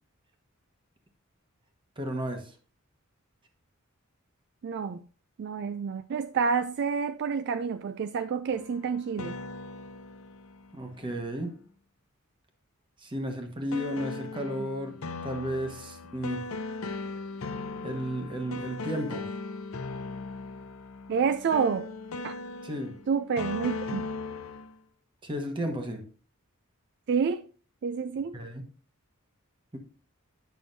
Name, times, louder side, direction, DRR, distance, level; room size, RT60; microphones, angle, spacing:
voice 1, 2.0-2.5 10.7-11.6 13.0-16.4 17.8-19.3 22.6-23.0 25.2-26.1 28.3-28.6 29.7-29.8, equal, 25° right, 1.1 m, -33 dB
voice 2, 4.6-5.0 5.4-9.4 21.1-21.9 22.2-22.3 23.1-24.0 27.1-27.4 27.8-28.4, right 6 dB, 55° right, 0.3 m, -28 dB
sound 1, 8.5-11.4 13.7-24.8, left 3 dB, 85° left, 0.6 m, -38 dB
9.2 x 6.1 x 2.6 m
head